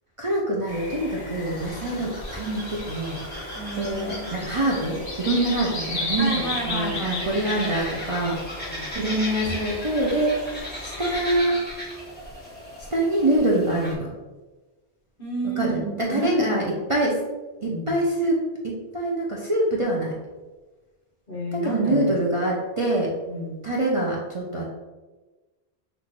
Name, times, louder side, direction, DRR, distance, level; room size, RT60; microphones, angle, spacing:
voice 1, 0.2-6.3 6.7-8.4 8.9-10.3 10.8-11.6 12.9-14.1 15.6-17.2 17.6-20.1 21.5-23.1 23.6-24.7, right 1 dB, 35° right, -3 dB, 0.6 m, -25 dB
sound 1, 0.7-11.4, left 2 dB, 80° left, 1.6 m, -35 dB
sound 2, 1.3-13.9, equal, 10° left, 1.2 m, -37 dB
voice 2, 3.5-4.3 6.2-7.7 8.7-8.9 15.2-16.5 17.6-18.0 21.3-22.1 23.3-23.6, right 1 dB, 55° left, -3 dB, 1.4 m, -31 dB
6.0 x 2.6 x 3.0 m, 1.2 s
omnidirectional pair, 1.1 m